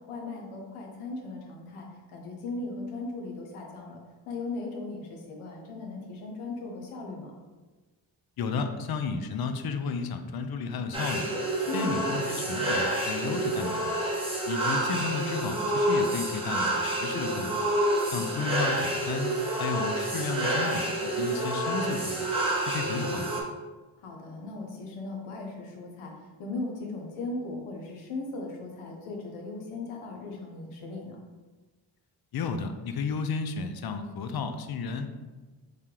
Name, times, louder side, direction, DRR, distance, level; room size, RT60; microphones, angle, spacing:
voice 1, 0.1-4.0 4.3-7.3 11.7-12.0 18.1-18.4 24.0-26.1 26.4-31.2, left 3 dB, 90° left, 0 dB, 0.8 m, -37 dB
voice 2, 8.4-11.3 11.7-13.8 14.5-17.6 18.1-22.3 22.6-23.4 32.3-35.1, left 4 dB, 50° left, 7 dB, 0.5 m, -33 dB
sound 1, 10.9-23.4, right 1 dB, 10° right, 1.0 m, -28 dB
3.3 x 2.8 x 3.7 m, 1.2 s
cardioid pair, 55°, 49 cm